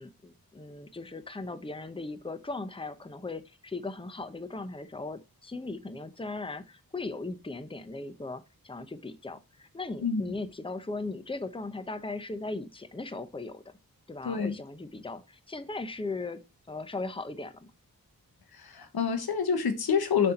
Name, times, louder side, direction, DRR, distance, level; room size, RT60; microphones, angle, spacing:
voice 1, 0.0-13.7 14.1-17.7, left 3 dB, 15° left, 0.8 m, -38 dB
voice 2, 14.2-14.6 18.6-20.3, left 6 dB, 85° left, 1.0 m, -27 dB
6.3 x 4.3 x 4.2 m
cardioid pair, 45°, 36 cm